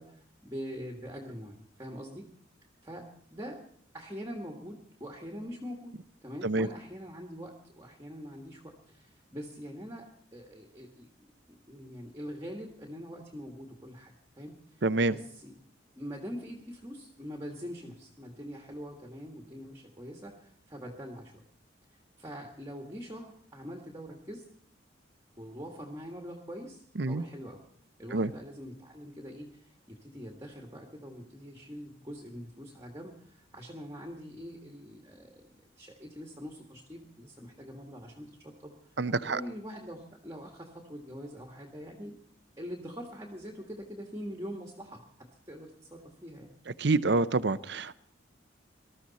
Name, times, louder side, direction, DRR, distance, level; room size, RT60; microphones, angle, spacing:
voice 1, 0.0-2.3 2.8-3.6 3.9-14.8 15.1-15.5 16.0-21.3 21.9-24.5 25.4-27.6 28.0-39.0 39.3-42.2 42.6-46.5, equal, 15° right, 1 dB, 1.7 m, -44 dB
voice 2, 14.8-15.1 27.0-27.2 28.1-28.3 39.0-39.4 46.8-48.0, right 3 dB, 60° right, 14 dB, 0.7 m, -27 dB
20.0 x 13.5 x 4.2 m, 0.64 s
head